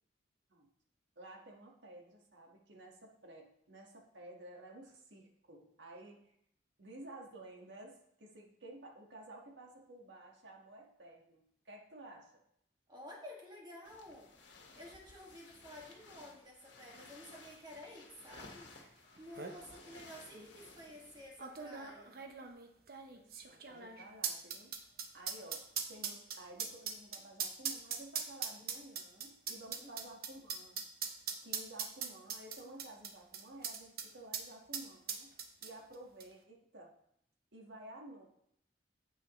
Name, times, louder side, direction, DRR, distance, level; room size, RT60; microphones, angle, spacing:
voice 1, 1.1-6.2 6.8-12.4 23.1-24.7 25.1-25.6 25.9-30.8 31.4-35.3 35.6-36.9 37.5-38.3, right 1 dB, 80° right, 0 dB, 1.7 m, -53 dB
voice 2, 12.9-14.3 14.8-18.7 19.2-22.2 29.8-30.1, left 1 dB, 25° right, -3 dB, 2.0 m, -52 dB
sound 1, 13.8-21.7, left 3 dB, 85° left, 1.5 m, -57 dB
sound 2, 18.8-18.9 19.2-19.6 20.3-20.5 21.4-34.1 34.3-34.5 34.7-35.9 36.2-36.3, right 6 dB, 55° right, 0.9 m, -40 dB
9.0 x 8.1 x 3.1 m, 0.71 s
head